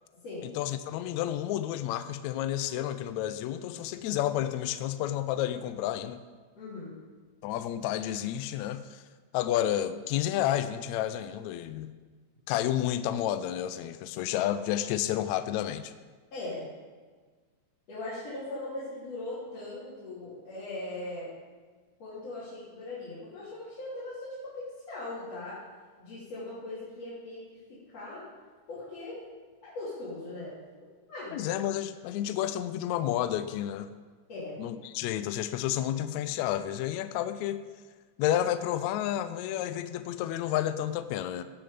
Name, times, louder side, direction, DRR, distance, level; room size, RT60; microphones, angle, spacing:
voice 1, 0.4-6.2 7.4-9.0 9.3-11.9 12.5-15.9 31.3-33.9 34.6-37.6 38.2-41.4, left 12 dB, 80° left, 11 dB, 1.8 m, -30 dB
voice 2, 6.5-6.9 16.3-16.7 17.9-21.3 22.0-25.6 26.0-28.2 28.7-29.2 29.6-30.5 31.1-31.5 34.3-34.6, left 2 dB, 55° left, -12 dB, 4.4 m, -39 dB
17.0 x 7.0 x 5.2 m, 1.4 s
omnidirectional pair, 3.5 m